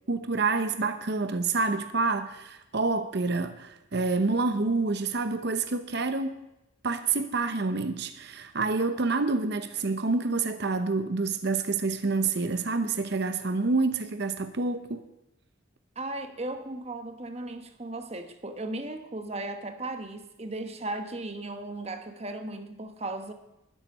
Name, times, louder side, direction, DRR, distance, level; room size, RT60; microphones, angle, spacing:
voice 1, 0.1-6.4 6.8-15.0, right 3 dB, 55° right, 0.8 m, -28 dB
voice 2, 15.9-23.3, right 2 dB, 30° right, 1.2 m, -36 dB
13.0 x 7.2 x 9.4 m
head